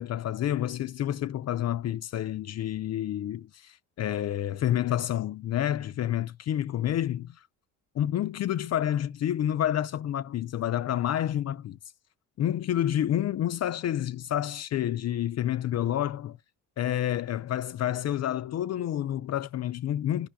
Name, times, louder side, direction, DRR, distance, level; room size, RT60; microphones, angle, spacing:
voice 1, 0.0-7.3 8.0-11.8 12.4-16.4 16.8-20.3, left 11 dB, 45° left, 0.4 m, -29 dB
10.5 x 5.4 x 2.2 m
supercardioid pair, 75°, 40 cm